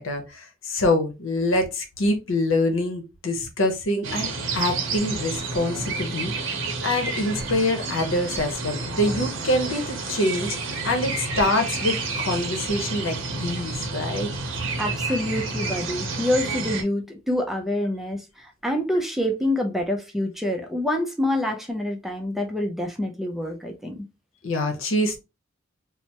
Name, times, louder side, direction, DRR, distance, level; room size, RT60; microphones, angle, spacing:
voice 1, 0.0-14.3 24.4-25.2, left 1 dB, 90° left, 0.8 m, -25 dB
sound 1, 4.0-16.8, right 3 dB, 80° right, 0.7 m, -30 dB
voice 2, 14.8-24.0, left 1 dB, ahead, 0.4 m, -26 dB
3.2 x 2.0 x 2.8 m
head